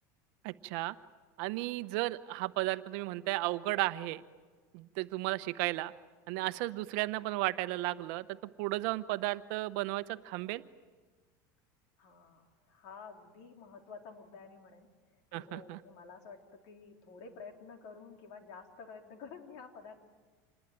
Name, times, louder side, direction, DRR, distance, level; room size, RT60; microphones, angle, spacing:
voice 1, 0.4-0.9 1.4-4.2 4.7-5.9 6.3-10.6 15.3-15.8, right 18 dB, 60° right, 13 dB, 0.9 m, -34 dB
voice 2, 12.0-20.0, left 5 dB, 65° left, 4 dB, 3.7 m, -51 dB
26.5 x 20.5 x 9.2 m, 1.4 s
supercardioid pair, 150°, 9 cm